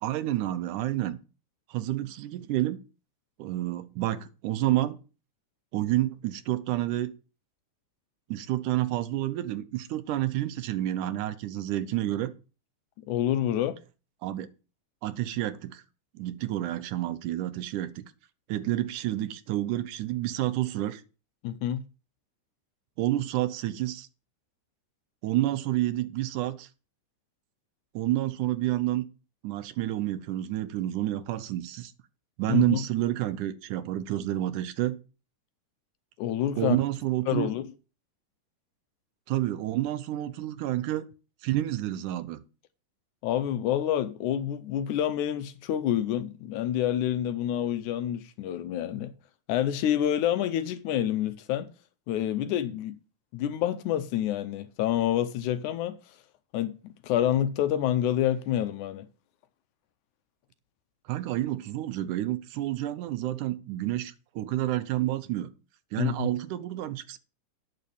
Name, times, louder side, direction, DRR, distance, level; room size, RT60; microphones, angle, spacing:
voice 1, 0.0-1.2 1.7-2.8 3.4-5.0 5.7-7.1 8.3-12.3 14.2-14.5 15.0-15.8 16.2-18.1 18.5-21.0 23.0-24.1 25.2-26.7 27.9-29.1 29.4-31.9 32.4-35.0 36.6-37.5 39.3-41.1 41.4-42.4 61.1-65.5 65.9-67.2, right 14 dB, 75° right, 2.2 m, -29 dB
voice 2, 13.1-13.8 21.4-21.8 32.5-32.8 36.2-36.8 37.3-37.7 43.2-49.1 49.5-51.7 52.1-53.0 53.3-56.0 56.5-59.1 66.0-66.3, left 11 dB, 75° left, 2.0 m, -28 dB
9.2 x 6.5 x 6.9 m
omnidirectional pair, 3.8 m